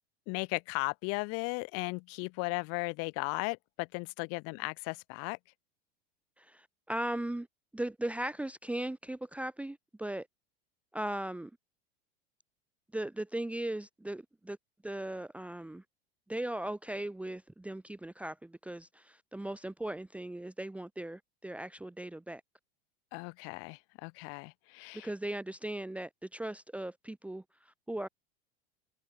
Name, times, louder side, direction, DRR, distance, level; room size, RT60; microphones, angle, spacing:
voice 1, 0.3-5.4 23.1-25.1, left 32 dB, 50° left, 3.3 m, -36 dB
voice 2, 6.4-7.5 7.7-10.3 10.9-11.5 12.9-14.6 14.8-15.8 16.3-22.4 25.0-28.1, right 1 dB, 5° right, 1.1 m, -38 dB
figure-of-eight pair, 80°, 30 cm